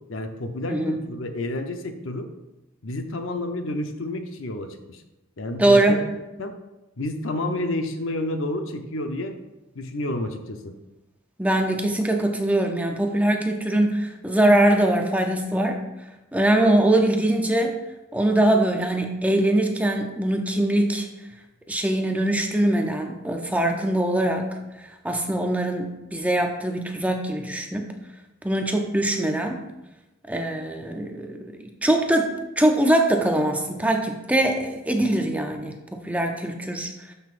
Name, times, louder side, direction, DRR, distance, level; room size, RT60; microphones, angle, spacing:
voice 1, 0.1-2.3 2.8-5.0 5.4-6.0 6.4-6.5 7.0-9.3 9.7-10.7, left 1 dB, 65° left, 6 dB, 0.7 m, -30 dB
voice 2, 0.7-1.0 5.6-6.0 11.4-15.9 16.3-17.8 18.1-21.1 21.7-24.6 25.0-28.0 28.4-29.7 30.3-37.1, right 1 dB, 5° right, 3 dB, 0.5 m, -22 dB
12.0 x 5.5 x 2.5 m, 1.0 s
head